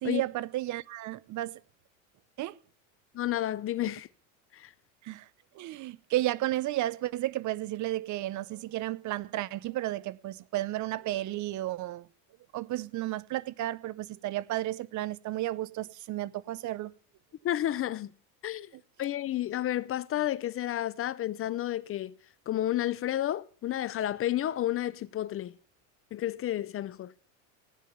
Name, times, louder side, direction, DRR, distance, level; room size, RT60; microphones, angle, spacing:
voice 1, 0.0-1.6 2.4-2.6 5.0-5.3 5.5-12.1 12.5-16.9, right 15 dB, 45° right, 0.8 m, -33 dB
voice 2, 3.1-4.1 4.5-4.7 17.4-18.1 18.4-18.7 19.0-22.1 22.5-25.5 26.1-27.1, left 13 dB, 35° left, 0.6 m, -31 dB
16.0 x 9.9 x 6.8 m
supercardioid pair, 110°, 40 cm